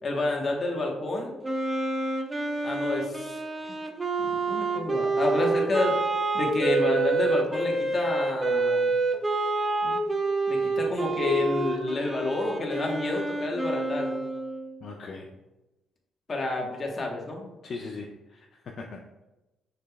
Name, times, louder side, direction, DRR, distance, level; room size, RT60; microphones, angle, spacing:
voice 1, 0.0-1.3 2.6-3.4 3.6-3.7 4.2-6.0 6.3-8.9 9.8-10.0 10.5-14.2 16.3-17.5, left 2 dB, 40° left, 0 dB, 1.1 m, -29 dB
Wind instrument woodwind instrument, 1.4-14.8, right 3 dB, 25° right, 0.6 m, -28 dB
voice 2, 14.8-15.4 17.6-19.0, left 4 dB, 55° left, 1 dB, 0.4 m, -39 dB
6.4 x 3.3 x 2.2 m, 1.0 s
cardioid pair, 90°, 0 cm